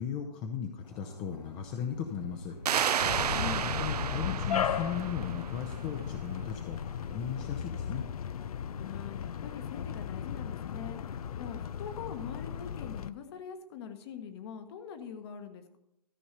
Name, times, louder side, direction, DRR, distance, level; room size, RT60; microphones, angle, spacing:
voice 1, 0.0-2.6 3.8-8.0, left 8 dB, 20° left, 5 dB, 0.7 m, -37 dB
sound 1, 0.8-7.6, left 2 dB, 90° left, 1.6 m, -50 dB
sound 2, 2.7-6.0, right 8 dB, 70° right, 0.5 m, -32 dB
sound 3, 3.0-13.1, left 8 dB, 60° left, 0.6 m, -36 dB
voice 2, 3.3-3.6 8.8-11.0 11.4-15.8, left 7 dB, 40° left, 8 dB, 1.3 m, -43 dB
13.5 x 5.4 x 6.6 m, 0.88 s
hypercardioid pair, 135°, 21 cm